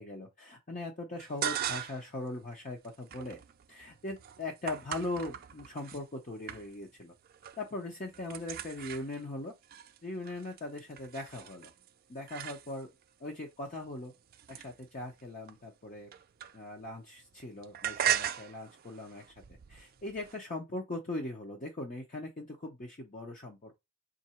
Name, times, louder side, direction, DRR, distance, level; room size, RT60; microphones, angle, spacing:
voice 1, 0.0-3.4 3.7-7.1 7.6-9.5 10.0-11.7 12.1-12.9 13.2-14.1 14.5-16.1 16.5-19.2 19.7-23.7, left 2 dB, 40° left, 0.7 m, -40 dB
sound 1, 1.2-2.2 2.5-6.0 6.5-7.0 7.2-7.7 8.0-13.0 13.7-16.9 17.2-20.4, right 10 dB, 50° right, 0.4 m, -39 dB
3.7 x 2.6 x 4.2 m
head